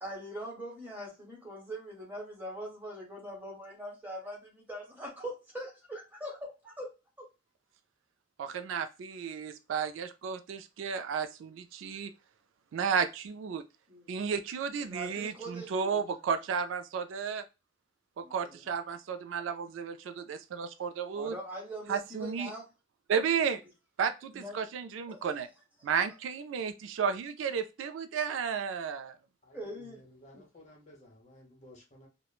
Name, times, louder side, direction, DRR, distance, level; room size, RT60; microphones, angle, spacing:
voice 1, 0.0-6.9 7.2-7.3 13.9-14.1 14.8-16.0 18.2-18.7 21.1-22.6 24.3-24.6 25.1-25.2 25.9-26.0 29.5-30.0 30.3-30.4, right 1 dB, 10° right, -3 dB, 1.2 m, -42 dB
voice 2, 8.4-12.1 12.7-13.6 14.1-17.4 18.2-21.3 21.9-22.5 23.1-23.6 24.0-25.5 25.8-29.2, right 6 dB, 70° right, 10 dB, 0.3 m, -33 dB
voice 3, 29.4-32.1, equal, 35° left, 0 dB, 1.1 m, -55 dB
3.0 x 2.1 x 2.3 m, 0.28 s
head